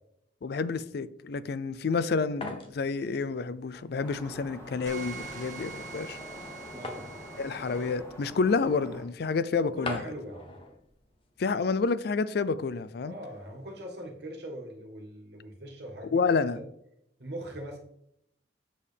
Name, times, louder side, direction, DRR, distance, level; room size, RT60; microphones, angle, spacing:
voice 1, 0.4-6.2 7.4-10.0 11.4-13.1 16.1-16.6, left 4 dB, 60° left, 0.4 m, -29 dB
sound 1, 1.5-12.0, left 1 dB, 30° left, 1.1 m, -45 dB
sound 2, 4.0-9.0, left 1 dB, 15° left, 2.5 m, -45 dB
sound 3, 4.9-7.9, right 5 dB, 45° right, 1.9 m, -44 dB
voice 2, 6.7-7.1 9.7-10.5 13.0-16.2 16.5-16.7 17.2-17.8, right 1 dB, 65° right, 1.8 m, -41 dB
7.6 x 6.5 x 3.4 m
head